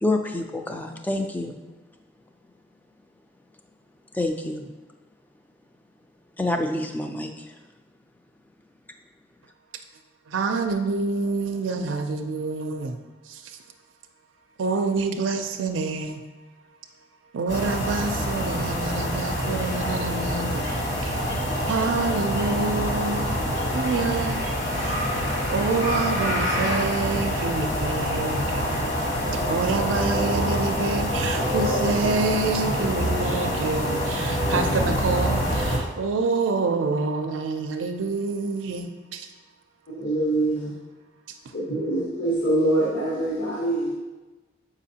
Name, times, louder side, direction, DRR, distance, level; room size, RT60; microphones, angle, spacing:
voice 1, 0.0-1.6 4.1-4.7 6.4-7.5, left 2 dB, 10° left, 5 dB, 0.3 m, -27 dB
voice 2, 10.3-13.0 13.3-13.4 14.6-16.2 17.3-20.7 21.0-21.2 21.7-23.3 23.7-24.4 24.8-25.0 25.5-28.7 29.5-39.3, right 4 dB, 85° right, 5 dB, 0.4 m, -27 dB
sound 1, 17.5-35.8, equal, 60° left, 1.3 m, -26 dB
voice 3, 39.9-40.7 41.5-43.9, right 1 dB, 75° left, -6 dB, 1.1 m, -24 dB
7.4 x 4.9 x 2.8 m, 1.2 s
head